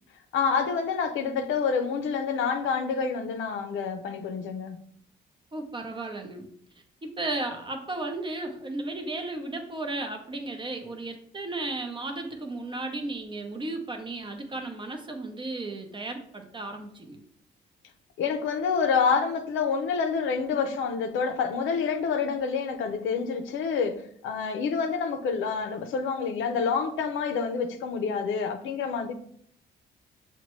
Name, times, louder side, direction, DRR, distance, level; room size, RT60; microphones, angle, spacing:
voice 1, 0.3-4.8 18.2-29.1, left 5 dB, 85° left, 0.5 m, -28 dB
voice 2, 5.5-6.5 7.0-17.2, right 2 dB, 25° right, 0.7 m, -34 dB
6.4 x 2.2 x 3.0 m
cardioid pair, 90°, 20 cm